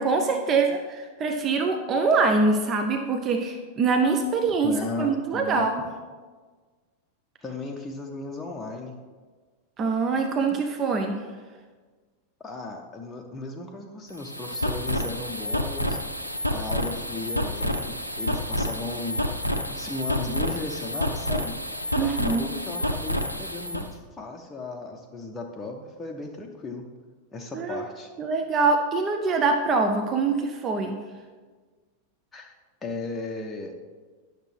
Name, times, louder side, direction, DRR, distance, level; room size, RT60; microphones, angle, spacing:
voice 1, 0.0-4.7 5.0-5.8 9.8-11.2 22.0-22.5 27.5-27.9 28.2-31.0, right 4 dB, 30° right, 4 dB, 0.6 m, -24 dB
voice 2, 4.6-5.7 7.4-9.0 12.4-16.0 16.5-21.6 22.0-26.9 27.3-28.1 32.3-32.5 32.8-33.8, left 3 dB, 15° left, 0 dB, 0.7 m, -36 dB
sound 1, 14.1-23.9, left 1 dB, 90° left, 0.5 m, -29 dB
10.0 x 6.5 x 3.3 m, 1.4 s
figure-of-eight pair, 90°, 0 cm